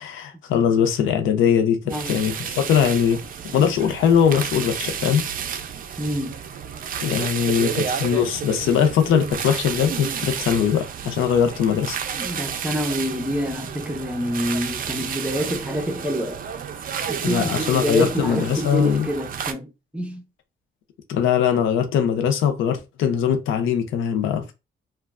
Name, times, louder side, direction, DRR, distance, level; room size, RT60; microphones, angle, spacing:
voice 1, 0.0-3.2 3.5-5.3 7.0-12.0 17.2-19.1 21.1-24.5, left 8 dB, 85° left, 0.6 m, -21 dB
voice 2, 1.8-2.2 6.0-6.4 12.2-16.4 17.1-20.2, equal, 5° right, 0.7 m, -27 dB
sound 1, 1.9-19.5, right 7 dB, 45° right, 0.4 m, -31 dB
2.9 x 2.3 x 2.4 m
cardioid pair, 90°, 20 cm